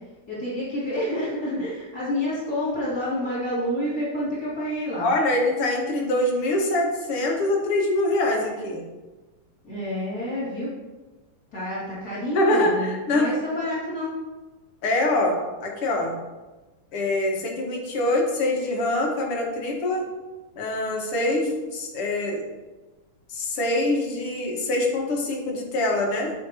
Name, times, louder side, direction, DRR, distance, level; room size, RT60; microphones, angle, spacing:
voice 1, 0.3-5.1 9.6-10.7 11.5-14.1, left 1 dB, 45° left, -9 dB, 3.1 m, -28 dB
voice 2, 5.0-8.8 12.3-13.3 14.8-16.1 16.9-20.1 20.6-22.4 23.3-26.3, left 1 dB, 85° left, -1 dB, 2.4 m, -24 dB
10.5 x 6.8 x 2.9 m, 1.2 s
omnidirectional pair, 2.4 m